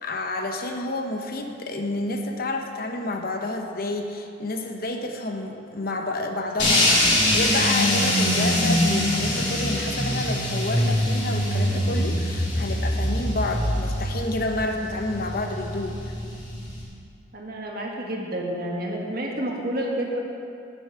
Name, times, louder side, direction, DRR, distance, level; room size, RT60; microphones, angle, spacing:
voice 1, 0.0-16.1, left 2 dB, 50° left, 4 dB, 0.9 m, -29 dB
sound 1, 6.6-16.8, left 1 dB, 70° left, 3.2 m, -24 dB
voice 2, 17.3-20.2, right 1 dB, 55° right, -1 dB, 1.6 m, -29 dB
9.6 x 9.3 x 5.7 m, 2.5 s
head